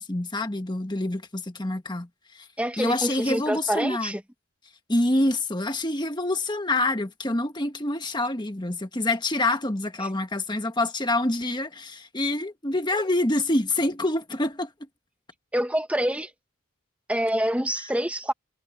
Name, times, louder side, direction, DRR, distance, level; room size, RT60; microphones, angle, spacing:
voice 1, 0.0-2.1 2.3-2.5 2.8-4.2 4.9-14.7, left 2 dB, 20° left, 1.4 m, -26 dB
voice 2, 2.6-4.2 10.0-10.1 15.5-16.3 17.1-18.3, equal, 5° right, 1.0 m, -26 dB
head